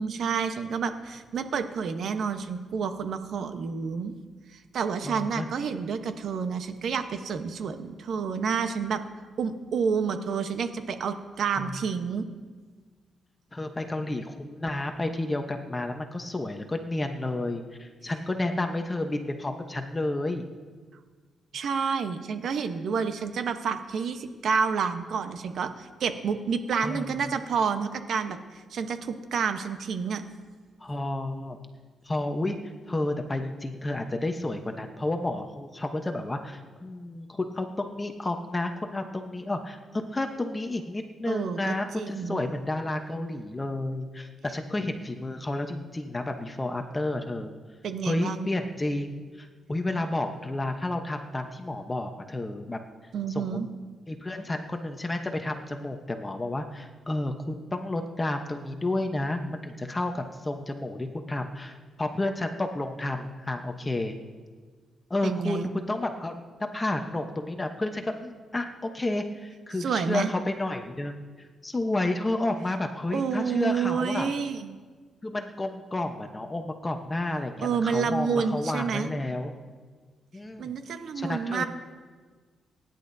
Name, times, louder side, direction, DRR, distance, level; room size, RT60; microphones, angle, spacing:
voice 1, 0.0-4.1 4.5-9.0 9.4-12.3 21.5-28.4 28.7-30.2 41.3-42.4 47.8-48.5 53.1-53.7 65.2-65.7 69.8-70.3 73.1-74.8 77.6-79.1 80.6-81.7, right 6 dB, 70° right, 8 dB, 1.0 m, -29 dB
voice 2, 5.0-5.5 11.6-11.8 13.5-20.4 26.8-27.1 30.8-31.6 32.0-32.6 32.9-47.5 48.1-52.8 53.3-53.6 54.1-64.2 65.1-74.3 75.2-79.5 80.3-80.7 81.1-81.7, left 2 dB, 20° left, 5 dB, 0.9 m, -31 dB
26.5 x 10.5 x 2.7 m, 1.5 s
cardioid pair, 90°, 0 cm